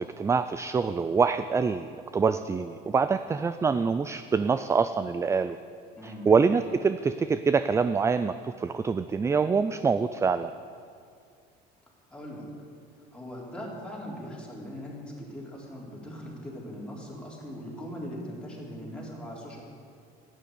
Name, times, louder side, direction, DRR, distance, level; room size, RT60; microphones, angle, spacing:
voice 1, 0.0-5.6 6.0-10.5, right 5 dB, 15° right, 12 dB, 0.3 m, -25 dB
voice 2, 12.1-12.5 13.1-19.6, equal, 5° left, -4 dB, 3.6 m, -40 dB
12.0 x 9.2 x 9.7 m, 2.3 s
cardioid pair, 125°, 18 cm